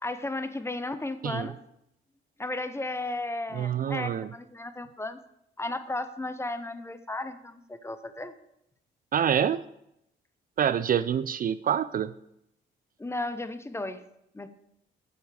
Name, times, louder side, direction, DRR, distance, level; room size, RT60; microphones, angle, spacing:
voice 1, 0.0-1.6 2.4-5.2 5.6-8.3 13.0-14.0 14.3-14.5, left 2 dB, 15° left, 11 dB, 0.7 m, -34 dB
voice 2, 3.5-4.3 9.1-9.6 10.6-12.1, right 9 dB, 45° right, 15 dB, 0.4 m, -26 dB
8.0 x 7.1 x 5.0 m, 0.78 s
cardioid pair, 90°, 20 cm